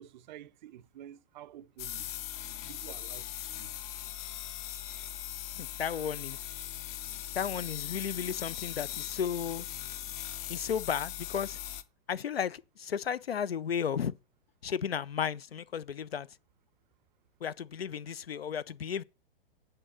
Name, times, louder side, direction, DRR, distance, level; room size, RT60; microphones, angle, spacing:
voice 1, 0.0-2.2 2.7-3.8 18.1-18.2, right 12 dB, 50° right, 0.5 m, -50 dB
sound 1, 1.8-11.8, left 12 dB, 25° left, 0.5 m, -40 dB
voice 2, 5.6-6.4 7.4-9.6 10.5-11.6 12.1-14.1 14.6-16.3 17.4-19.0, left 8 dB, 85° left, 0.5 m, -34 dB
8.9 x 3.8 x 6.3 m
figure-of-eight pair, 110°, 30 cm